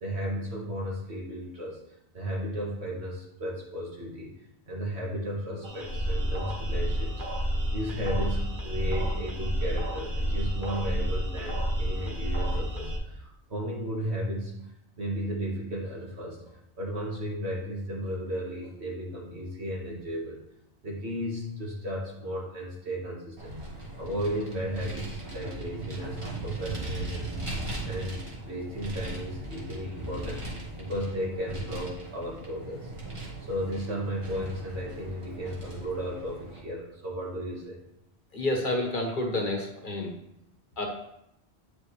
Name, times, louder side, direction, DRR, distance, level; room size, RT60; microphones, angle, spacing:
voice 1, 0.0-1.8 2.1-4.3 4.7-14.6 15.0-20.4 20.8-23.6 24.0-27.4 27.8-30.4 30.8-32.9 33.4-37.8, equal, 75° right, -3 dB, 2.0 m, -34 dB
sound 1, 5.6-13.0, equal, 50° right, 1.2 m, -30 dB
Vehicle, 23.4-36.6, right 2 dB, 30° right, 1.4 m, -38 dB
voice 2, 38.3-40.1 40.8-40.9, left 1 dB, 50° left, 1 dB, 1.3 m, -29 dB
8.3 x 5.1 x 3.3 m, 0.79 s
omnidirectional pair, 1.1 m